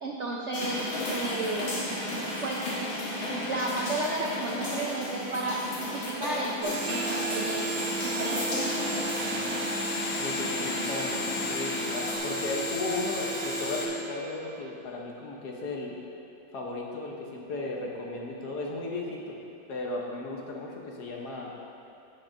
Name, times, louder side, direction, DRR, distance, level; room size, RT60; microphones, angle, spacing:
voice 1, 0.0-1.7 2.4-2.7 3.3-7.6 8.0-8.4, right 2 dB, 65° right, -2 dB, 0.7 m, -32 dB
sound 1, 0.5-12.2, left 1 dB, 80° left, 2.3 m, -34 dB
sound 2, 6.6-13.9, right 1 dB, 30° right, 1.4 m, -32 dB
voice 2, 9.2-9.7 10.2-16.0 16.5-19.4 19.7-21.5, left 2 dB, 60° left, -1 dB, 1.4 m, -35 dB
16.0 x 6.1 x 2.6 m, 2.7 s
omnidirectional pair, 2.1 m